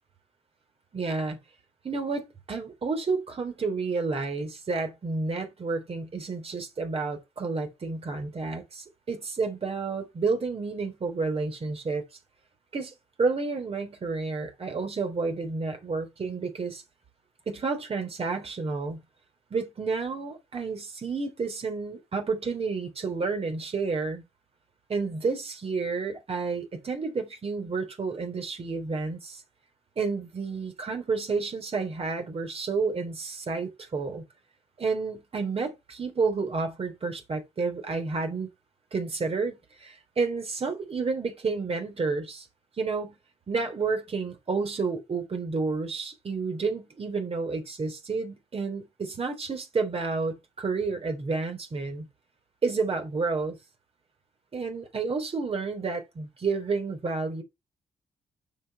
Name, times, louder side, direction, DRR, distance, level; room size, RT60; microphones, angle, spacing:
voice 1, 0.9-1.4 1.8-12.0 12.7-16.8 17.4-19.0 19.5-24.2 24.9-29.4 29.9-34.2 34.8-38.5 38.9-42.5 42.8-43.2 43.5-52.1 52.6-53.6 54.5-57.4, right 4 dB, 50° right, 3.4 m, -30 dB
7.3 x 5.5 x 4.4 m
hypercardioid pair, 45°, 13 cm